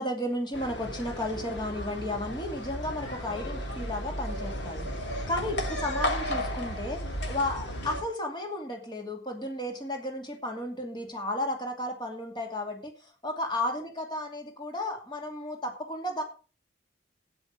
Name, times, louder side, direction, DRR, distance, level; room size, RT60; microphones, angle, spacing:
voice 1, 0.0-4.8 5.3-12.9 13.2-16.2, left 1 dB, 25° left, 2 dB, 2.5 m, -33 dB
sound 1, 0.5-8.0, equal, 80° left, 2.7 m, -34 dB
12.5 x 9.9 x 4.9 m, 0.36 s
head